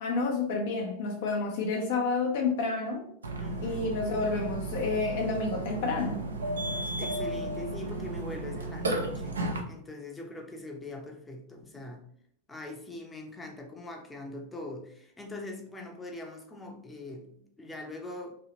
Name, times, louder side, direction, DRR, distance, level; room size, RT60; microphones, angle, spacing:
voice 1, 0.0-3.0 3.6-6.2, left 3 dB, 50° left, 0.5 m, -29 dB
Burping eructation, 3.2-9.6, right 2 dB, 70° right, 0.5 m, -34 dB
voice 2, 3.4-3.8 7.0-12.0 12.5-18.3, left 2 dB, 10° left, 0.6 m, -42 dB
3.0 x 2.7 x 2.8 m
figure-of-eight pair, 90°, 0 cm